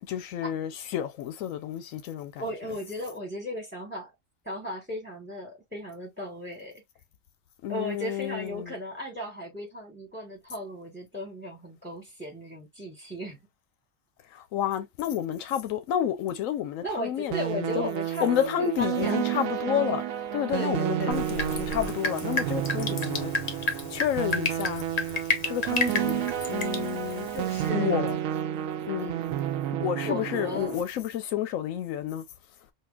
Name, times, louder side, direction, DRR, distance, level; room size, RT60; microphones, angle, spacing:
voice 1, 0.0-2.4 7.6-8.7 14.2-17.9 18.2-24.8 25.4-27.3 27.7-28.2 28.8-29.2 29.8-32.2, left 10 dB, 90° left, 1.0 m, -30 dB
voice 2, 2.4-4.1 4.4-6.8 7.7-13.4 16.8-19.3 20.5-21.2 27.3-28.0 29.0-29.2 30.0-30.8, left 1 dB, 10° right, 1.2 m, -36 dB
sound 1, 17.3-30.8, right 11 dB, 85° right, 1.0 m, -31 dB
Drip, 21.1-27.7, left 3 dB, 40° left, 0.7 m, -32 dB
5.5 x 2.3 x 2.3 m
omnidirectional pair, 1.3 m